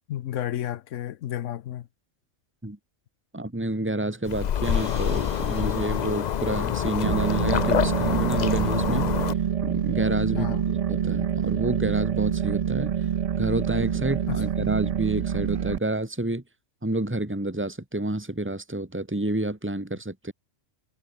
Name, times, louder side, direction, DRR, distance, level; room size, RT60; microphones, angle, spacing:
voice 1, 0.1-1.9 10.3-10.7 13.9-14.4, left 11 dB, 75° left, 1.0 m, -32 dB
voice 2, 3.3-9.3 9.6-13.0 13.4-16.4 16.8-20.3, right 1 dB, 10° right, 2.2 m, -29 dB
sound 1, 4.3-9.3, left 9 dB, 55° left, 0.5 m, -26 dB
sound 2, 4.6-8.4, right 1 dB, 40° right, 8.2 m, -50 dB
sound 3, 7.0-15.8, right 8 dB, 70° right, 0.3 m, -26 dB
omnidirectional pair, 1.3 m